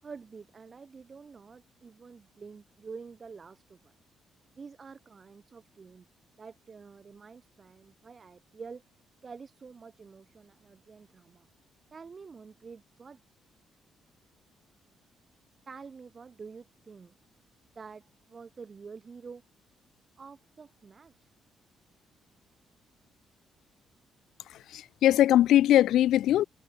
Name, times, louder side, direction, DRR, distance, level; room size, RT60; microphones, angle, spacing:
voice 1, 0.0-3.9 4.5-6.0 6.4-8.8 9.2-11.5 11.9-13.2 15.7-17.1 17.7-19.4 20.2-21.3, right 5 dB, 40° right, 6.4 m, -48 dB
voice 2, 24.7-26.4, left 12 dB, 80° left, 0.7 m, -21 dB
cardioid pair, 80°, 0 cm